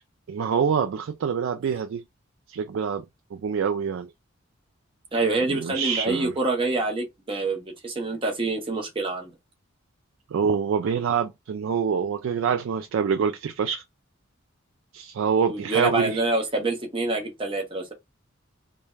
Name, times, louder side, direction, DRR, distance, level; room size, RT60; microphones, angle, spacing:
voice 1, 0.3-2.0 2.5-3.0 3.3-4.1 5.5-6.3 10.3-13.8 14.9-16.2, right 6 dB, 70° right, 0.3 m, -26 dB
voice 2, 5.1-9.3 15.5-17.9, right 2 dB, 25° right, 0.8 m, -26 dB
3.2 x 2.2 x 2.3 m
head